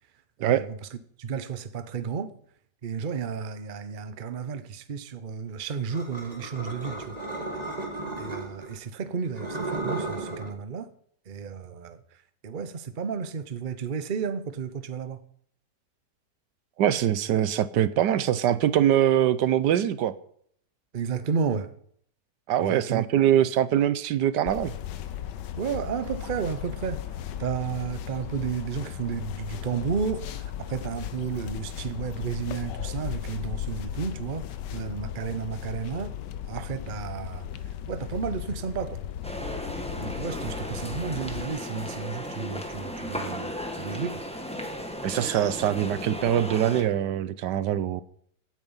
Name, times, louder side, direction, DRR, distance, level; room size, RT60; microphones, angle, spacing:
voice 1, 0.4-2.3 2.8-7.2 8.2-10.9 11.3-15.3 20.9-21.7 22.6-23.1 25.5-27.0 27.4-34.5 34.7-36.1 36.5-37.5 37.9-39.0 40.0-44.2, right 6 dB, 40° right, 0.8 m, -32 dB
sound 1, 5.9-8.7 9.2-10.5, right 2 dB, 20° right, 3.2 m, -34 dB
voice 2, 16.8-20.1 22.5-24.7 45.0-48.0, right 11 dB, 80° right, 1.4 m, -23 dB
sound 2, 24.5-41.4, left 10 dB, 85° left, 1.4 m, -36 dB
sound 3, 39.2-46.8, equal, 5° left, 1.6 m, -35 dB
16.0 x 9.2 x 5.5 m
omnidirectional pair, 1.8 m